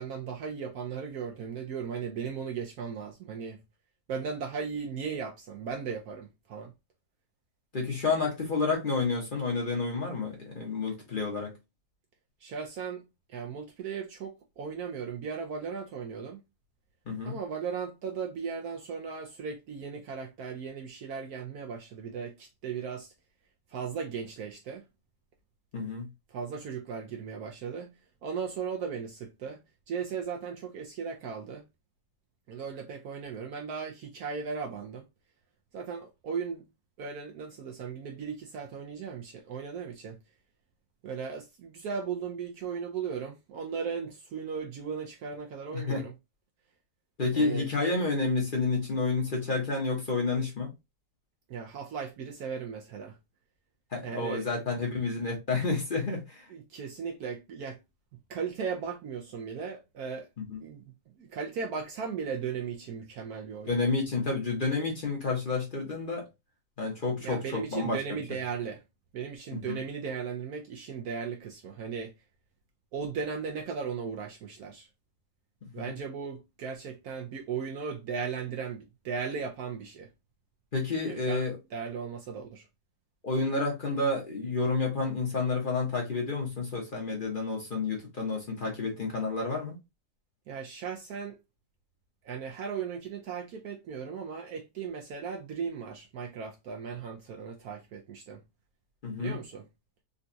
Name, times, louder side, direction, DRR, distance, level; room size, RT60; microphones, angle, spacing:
voice 1, 0.0-3.6 4.1-6.7 12.4-16.4 17.2-23.1 23.7-24.9 26.3-27.9 28.2-29.6 29.9-31.6 32.5-35.0 35.7-36.6 37.0-40.2 41.0-46.1 47.3-47.7 51.5-53.2 54.0-54.5 56.5-57.8 58.3-60.3 60.6-60.8 61.2-63.8 67.2-68.8 69.1-72.1 72.9-74.9 75.7-80.1 81.1-82.7 90.5-91.4 92.2-98.4 99.2-99.6, right 6 dB, 70° right, 0.9 m, -37 dB
voice 2, 7.7-11.5 17.1-17.4 25.7-26.1 45.7-46.0 47.2-50.7 53.9-56.5 60.4-60.6 63.7-66.3 66.8-68.2 69.5-69.8 75.7-75.9 80.7-81.6 83.2-89.8 99.0-99.4, left 3 dB, 40° left, 0.7 m, -30 dB
3.9 x 2.3 x 2.5 m
omnidirectional pair, 2.0 m